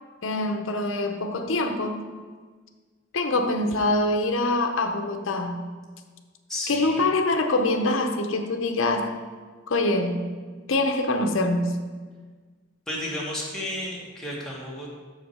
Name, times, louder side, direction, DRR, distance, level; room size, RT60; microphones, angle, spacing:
voice 1, 0.2-2.1 3.1-5.6 6.7-9.2 9.7-10.2 10.7-11.7, left 2 dB, 65° left, 6 dB, 0.7 m, -24 dB
voice 2, 6.5-7.0 12.9-14.9, left 1 dB, 5° left, -6 dB, 1.4 m, -32 dB
6.5 x 5.0 x 5.4 m, 1.5 s
head